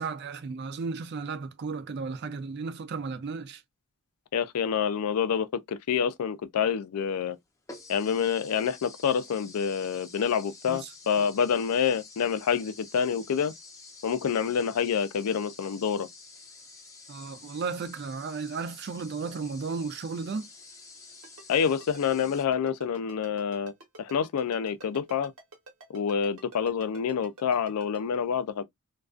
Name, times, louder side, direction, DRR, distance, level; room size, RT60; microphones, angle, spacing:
voice 1, 0.0-3.6 10.7-10.9 17.1-20.5, right 4 dB, 50° right, 0.3 m, -34 dB
voice 2, 4.3-7.4 7.9-13.5 14.0-16.1 21.5-23.7 24.0-25.3 25.9-28.6, left 7 dB, 90° left, 0.4 m, -27 dB
sound 1, 7.0-7.1 7.7-22.4, left 3 dB, 15° left, 0.4 m, -49 dB
Ringtone, 21.2-28.0, right 2 dB, 75° right, 1.0 m, -48 dB
2.3 x 2.2 x 2.3 m
head